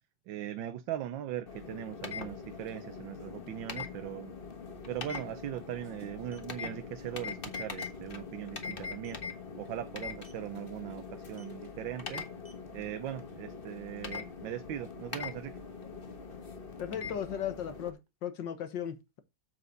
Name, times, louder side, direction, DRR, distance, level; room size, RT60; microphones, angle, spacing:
voice 1, 0.3-4.3 4.9-9.2 9.6-12.3 12.7-15.6, right 12 dB, 90° right, 1.5 m, -40 dB
sound 1, 1.5-17.9, left 5 dB, 35° left, 1.4 m, -42 dB
sound 2, 4.9-5.3 6.3-6.5 6.9-7.1 7.4-7.5 7.8-8.1 8.9-9.3 10.1-10.5 11.3-11.6 12.3-13.6, right 1 dB, 10° right, 2.2 m, -59 dB
voice 2, 16.8-19.2, left 9 dB, 75° left, 2.0 m, -37 dB
8.2 x 7.9 x 3.9 m
omnidirectional pair, 2.0 m